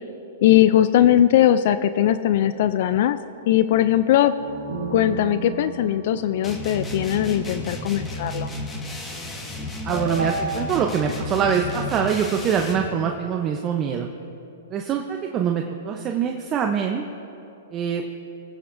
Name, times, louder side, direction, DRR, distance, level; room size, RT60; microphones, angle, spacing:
voice 1, 0.4-3.2 3.5-4.3 4.9-8.5, left 12 dB, 55° left, 13 dB, 0.4 m, -19 dB
sound 1, 4.4-9.2 9.9-12.5, right 3 dB, 85° right, 2.3 m, -34 dB
sound 2, 6.4-12.9, left 1 dB, 15° left, 1.6 m, -32 dB
voice 2, 9.8-14.1 14.7-17.1 17.7-18.0, right 7 dB, 25° right, 3 dB, 0.7 m, -24 dB
23.0 x 9.2 x 2.6 m, 2.9 s
hypercardioid pair, 135°, 0 cm